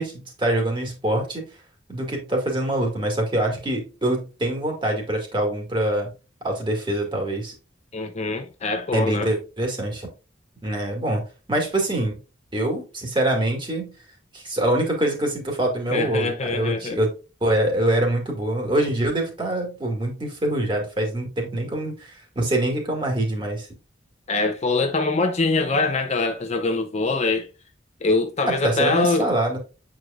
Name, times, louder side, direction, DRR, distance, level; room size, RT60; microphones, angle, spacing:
voice 1, 0.0-1.5 1.9-6.1 6.4-7.5 8.9-10.1 10.6-11.2 11.5-12.2 12.5-13.9 14.3-17.1 17.4-23.7 28.5-29.6, right 1 dB, 25° right, 2.1 m, -24 dB
voice 2, 7.9-9.3 15.9-17.0 24.3-27.5 28.0-29.3, left 3 dB, 35° left, 0.6 m, -23 dB
8.1 x 4.9 x 2.4 m
head